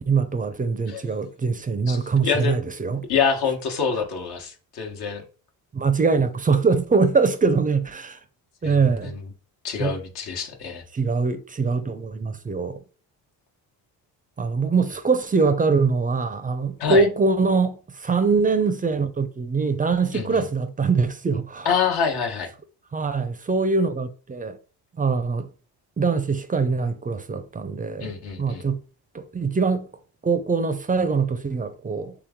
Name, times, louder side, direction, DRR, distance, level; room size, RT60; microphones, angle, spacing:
voice 1, 0.0-3.1 5.7-8.2 8.6-9.1 9.8-10.0 10.9-12.8 14.4-21.7 22.9-24.6 24.9-25.5 26.0-28.1 28.4-28.8 29.1-29.9 30.2-32.3, right 4 dB, 20° right, 0.4 m, -23 dB
voice 2, 1.9-2.5 3.1-5.2 8.6-9.2 9.6-10.8 16.8-17.1 20.1-20.4 21.6-22.5 28.0-28.6, left 6 dB, 65° left, 1.1 m, -26 dB
3.4 x 3.0 x 3.6 m
cardioid pair, 85°, 41 cm